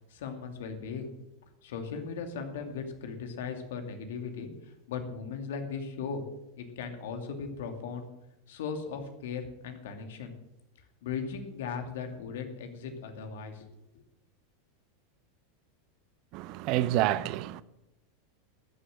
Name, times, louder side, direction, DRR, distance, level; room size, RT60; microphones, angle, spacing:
voice 1, 0.1-1.1 1.6-6.2 6.6-8.1 8.5-10.3 11.0-13.7 13.9-14.0, left 5 dB, 70° left, 2.5 m, -38 dB
voice 2, 16.3-17.6, right 14 dB, 50° right, 0.6 m, -28 dB
14.0 x 9.9 x 6.5 m
hypercardioid pair, 95°, 0 cm